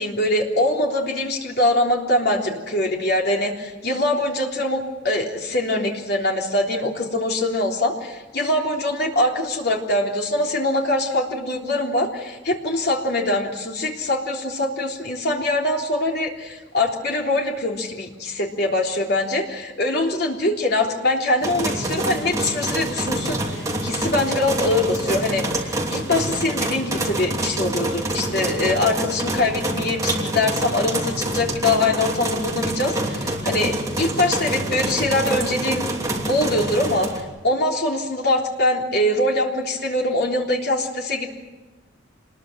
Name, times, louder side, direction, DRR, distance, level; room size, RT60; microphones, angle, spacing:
voice 1, 0.0-35.8 36.3-41.3, left 1 dB, 55° left, 0 dB, 3.6 m, -23 dB
sound 1, 21.4-37.2, right 1 dB, 15° right, 3.0 m, -26 dB
26.5 x 21.0 x 7.6 m, 1.2 s
head